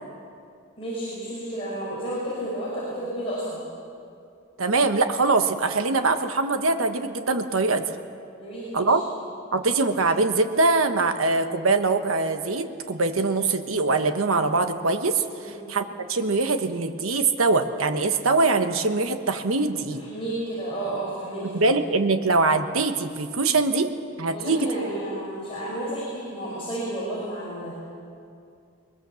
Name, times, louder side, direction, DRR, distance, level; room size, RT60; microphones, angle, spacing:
voice 1, 0.8-3.6 8.4-9.0 15.4-15.6 19.9-21.7 24.3-27.8, right 1 dB, 25° left, -8 dB, 5.2 m, -32 dB
voice 2, 4.6-7.9 8.7-9.0 9.5-20.0 21.5-23.9 24.2-24.9, right 3 dB, 90° right, 7 dB, 1.2 m, -23 dB
21.5 x 21.5 x 7.0 m, 2.4 s
head